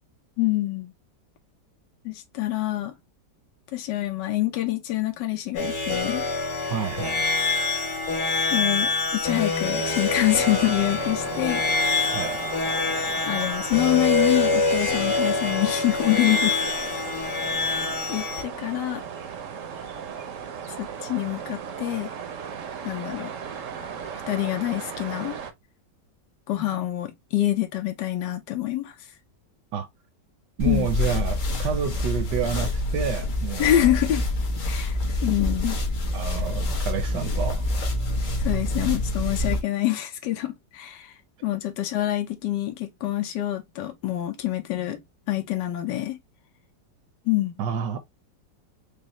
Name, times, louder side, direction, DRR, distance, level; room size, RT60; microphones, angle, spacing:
voice 1, 0.4-0.9 2.0-2.9 3.7-6.2 8.5-11.6 13.3-16.6 17.6-19.0 20.8-22.1 22.8-23.3 24.3-25.3 26.5-28.9 30.6-30.9 33.6-34.2 34.6-34.9 35.2-35.8 38.4-41.1 41.4-45.0 45.3-46.2 47.2-47.5, left 14 dB, 80° left, 1.4 m, -26 dB
sound 1, 5.5-18.4, left 3 dB, 55° left, 1.7 m, -25 dB
voice 2, 6.7-7.3 12.1-12.4 29.7-29.9 30.6-34.0 36.1-37.6 47.6-48.0, right 7 dB, 75° right, 1.3 m, -29 dB
sound 2, 9.8-25.5, right 7 dB, 60° right, 0.9 m, -37 dB
sound 3, 30.6-39.6, left 1 dB, 40° left, 0.7 m, -26 dB
5.2 x 2.1 x 2.9 m
omnidirectional pair, 1.9 m